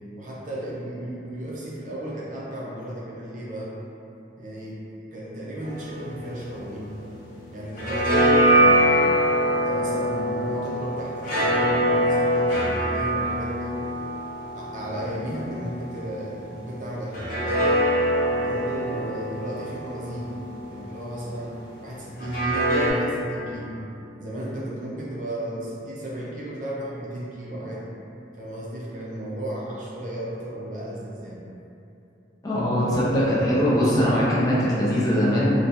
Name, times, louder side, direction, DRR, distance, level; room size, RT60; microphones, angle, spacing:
voice 1, 0.1-3.7 4.4-4.8 5.1-7.0 7.5-9.1 9.6-13.8 14.5-17.8 18.3-20.4 20.7-23.8 24.2-27.9 28.4-31.4, right 1 dB, 45° right, -5 dB, 0.5 m, -34 dB
sound 1, 5.6-7.3 7.6-16.3 17.1-21.2 22.2-22.9, equal, 50° left, 0.8 m, -24 dB
voice 2, 32.4-35.5, equal, 20° left, -8 dB, 0.4 m, -21 dB
3.3 x 2.1 x 2.7 m, 2.8 s
head